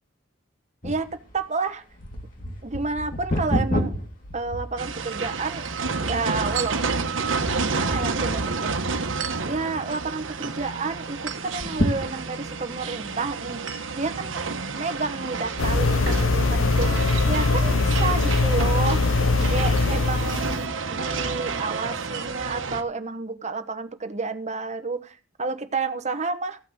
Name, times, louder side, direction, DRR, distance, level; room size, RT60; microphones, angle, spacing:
sound 1, 0.8-5.3 5.9-6.0 6.6-6.9 7.2-7.9 8.4-9.1 9.5-9.6 9.8-9.9 11.4-12.6 13.2-13.3, equal, 45° left, 2.7 m, -29 dB
voice 1, 0.8-1.8 2.6-3.9 4.3-5.6 6.0-6.8 7.6-8.9 9.4-13.6 13.9-14.4 14.7-16.9 17.3-19.0 19.5-26.6, right 4 dB, 35° right, 9 dB, 1.1 m, -30 dB
sound 2, 4.8-22.8, right 4 dB, 80° right, 1.2 m, -30 dB
sound 3, 15.6-20.7, left 3 dB, 85° left, 0.7 m, -22 dB
14.5 x 5.9 x 8.0 m, 0.35 s
head